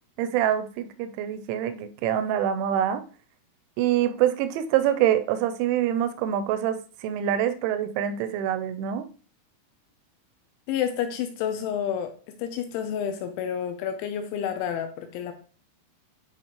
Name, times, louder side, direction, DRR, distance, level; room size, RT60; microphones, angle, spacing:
voice 1, 0.2-3.0 3.8-9.1, right 10 dB, 85° right, 10 dB, 2.7 m, -25 dB
voice 2, 10.7-15.3, left 9 dB, 80° left, 7 dB, 2.7 m, -30 dB
9.7 x 4.5 x 3.0 m, 0.39 s
omnidirectional pair, 5.9 m